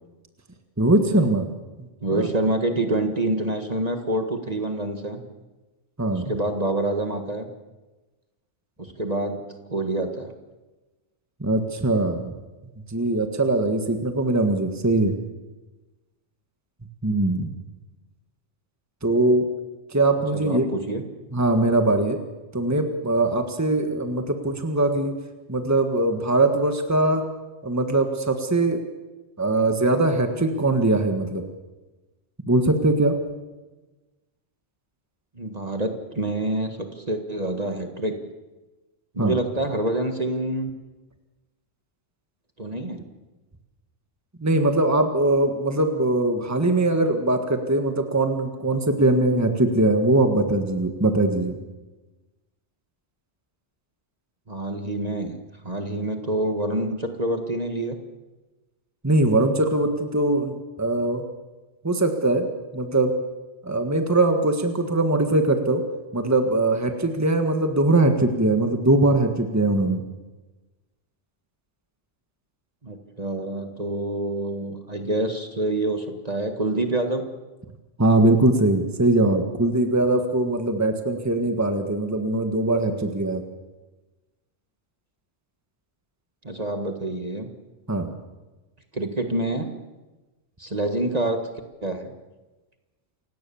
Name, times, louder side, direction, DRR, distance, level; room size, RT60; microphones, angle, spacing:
voice 1, 0.8-1.5 2.1-2.3 6.0-6.2 11.4-12.3 12.9-15.2 17.0-17.5 19.0-19.4 19.9-20.7 21.3-22.2 22.5-25.1 25.5-27.3 27.6-28.8 29.4-31.4 32.5-33.2 39.2-39.3 44.4-51.6 59.0-61.2 61.8-62.5 62.7-63.1 63.6-65.8 66.1-70.0 78.0-83.4 87.9-88.1, right 2 dB, 15° right, 6 dB, 1.7 m, -21 dB
voice 2, 2.0-5.2 6.1-7.5 8.8-10.3 20.3-21.0 35.4-38.2 39.1-40.7 42.6-43.1 54.5-55.4 55.6-58.0 72.8-77.2 86.4-87.5 88.9-89.7 90.6-91.4 91.8-92.1, right 1 dB, 30° right, 6 dB, 1.8 m, -27 dB
28.5 x 17.0 x 7.2 m, 1.2 s
omnidirectional pair, 1.3 m